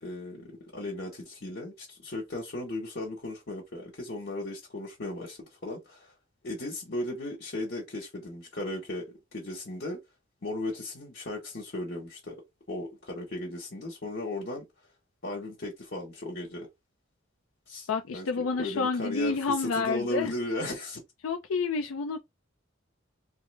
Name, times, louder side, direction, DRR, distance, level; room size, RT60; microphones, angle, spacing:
voice 1, 0.0-6.1 6.4-10.0 10.4-12.4 12.7-14.7 15.2-16.7 17.7-17.9 18.1-21.0, left 1 dB, 55° left, 1.1 m, -36 dB
voice 2, 17.9-20.3 21.2-22.2, left 4 dB, 85° left, 0.4 m, -29 dB
3.1 x 2.0 x 3.2 m
head